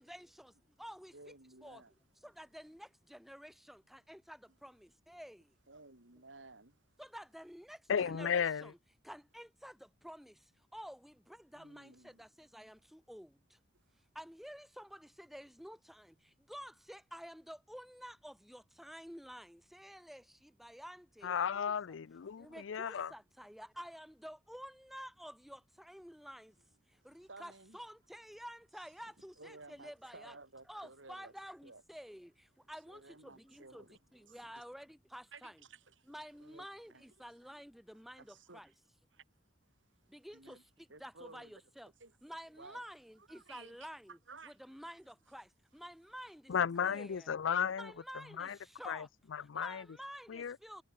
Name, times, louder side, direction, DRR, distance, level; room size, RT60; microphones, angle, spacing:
voice 1, 0.0-1.2 1.6-1.8 2.2-5.5 7.0-8.7 9.0-13.6 14.1-21.9 22.4-26.6 26.9-30.4 30.7-35.6 36.1-38.7 40.1-41.9 42.2-44.2 44.4-46.5 46.8-47.3 47.8-49.1 49.5-50.8, equal, ahead, 3.1 m, -51 dB
voice 2, 1.1-1.9 5.7-6.8 11.5-12.2 27.0-27.8 29.4-31.3 31.6-31.8 32.9-34.6 35.3-37.1 38.2-38.7 39.1-39.2 40.3-40.6 40.9-41.5 42.0-42.1 42.6-42.8 43.3-43.9 44.3-44.6 46.5-46.9, right 3 dB, 80° right, 4.4 m, -56 dB
voice 3, 7.9-8.7 21.2-23.1 46.5-47.9 48.4-48.6 48.9-49.8 50.3-50.6, left 7 dB, 85° left, 0.5 m, -34 dB
head